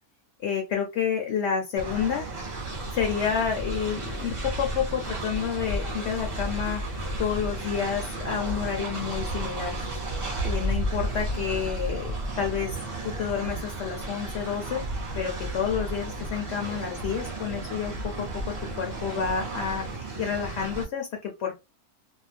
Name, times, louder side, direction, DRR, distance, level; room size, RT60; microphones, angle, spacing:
voice 1, 0.4-2.3 2.9-9.8 10.4-21.5, left 7 dB, 60° left, 4 dB, 0.7 m, -30 dB
Train, 1.8-20.8, right 1 dB, 30° right, 0.6 m, -33 dB
2.6 x 2.1 x 3.3 m, 0.25 s
omnidirectional pair, 1.6 m